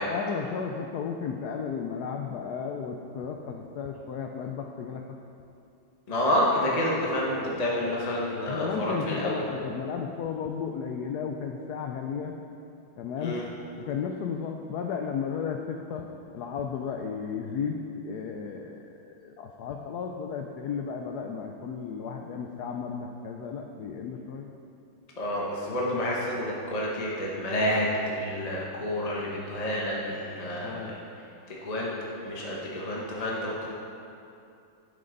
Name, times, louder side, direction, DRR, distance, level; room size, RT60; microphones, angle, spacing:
voice 1, 0.0-5.2 7.4-7.6 8.5-12.4 13.0-13.4 13.8-24.5 30.6-31.0, left 6 dB, 85° left, 3 dB, 0.8 m, -34 dB
voice 2, 6.1-9.4 13.2-13.4 25.2-30.9 31.5-31.9 32.2-33.7, left 1 dB, 35° left, -4 dB, 0.6 m, -29 dB
10.5 x 6.7 x 3.9 m, 2.6 s
omnidirectional pair, 2.3 m